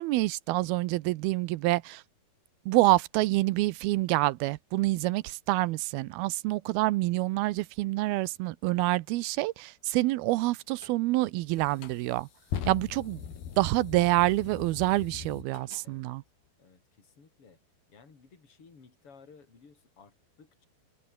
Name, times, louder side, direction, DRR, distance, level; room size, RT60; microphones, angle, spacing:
voice 1, 0.0-2.0 2.7-12.3 12.7-13.2 13.6-16.2, right 19 dB, 80° right, 2.6 m, -27 dB
sound 1, 10.8-11.0 11.6-15.8, left 8 dB, 75° left, 4.6 m, -40 dB
voice 2, 15.8-16.2 16.6-17.6 17.9-20.7, left 5 dB, 35° left, 5.4 m, -56 dB
omnidirectional pair, 4.4 m